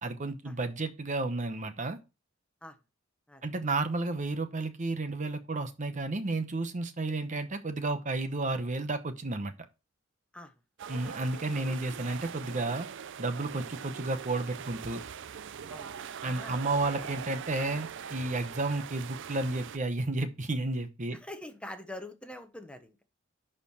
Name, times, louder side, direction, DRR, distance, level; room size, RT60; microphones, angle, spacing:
voice 1, 0.0-2.0 3.4-9.5 10.9-12.9 13.2-15.0 16.2-21.2, right 2 dB, 40° right, 0.9 m, -32 dB
sound 1, 10.8-19.8, right 7 dB, 65° right, 0.5 m, -42 dB
voice 2, 16.2-16.6 17.0-17.1 21.1-23.0, left 1 dB, 5° left, 1.0 m, -44 dB
11.0 x 4.5 x 4.7 m
head